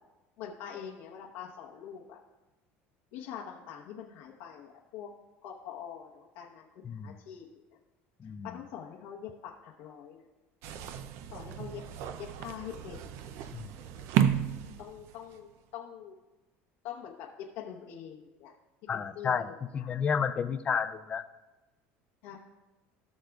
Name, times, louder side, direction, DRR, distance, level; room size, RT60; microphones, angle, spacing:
voice 1, 0.4-2.2 3.1-5.1 5.4-7.5 8.2-10.2 11.3-11.8 12.2-13.1 14.8-16.1 16.8-17.3 17.5-18.5 18.9-19.3 19.8-19.9 22.2-22.4, left 9 dB, 80° left, -3 dB, 1.0 m, -44 dB
voice 2, 6.8-7.2 8.2-8.6 13.5-13.7 18.9-21.2, left 7 dB, 25° left, 11 dB, 0.5 m, -31 dB
sound 1, 10.6-15.4, right 10 dB, 60° right, 0.5 m, -33 dB
17.0 x 6.5 x 2.4 m, 1.1 s
cardioid pair, 140°, 5 cm